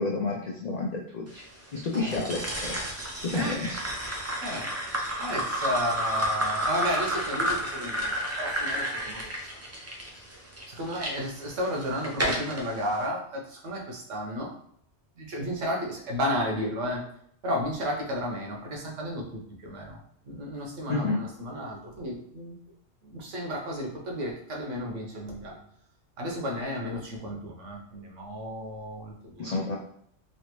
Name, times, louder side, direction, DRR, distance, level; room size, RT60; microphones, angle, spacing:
voice 1, 0.0-1.4 1.7-2.8 3.2-3.8 20.9-21.2 29.4-29.8, left 3 dB, 75° left, 0 dB, 0.3 m, -30 dB
sound 1, 1.9-11.1 11.7-12.6, equal, 25° right, 0.3 m, -31 dB
voice 2, 3.3-3.8 4.4-4.7 5.2-9.2 10.7-14.5 15.2-17.0 17.4-20.0 20.3-22.5 23.0-25.6 26.2-29.5, equal, 80° right, 0 dB, 1.2 m, -33 dB
3.3 x 2.7 x 2.9 m, 0.65 s
omnidirectional pair, 1.2 m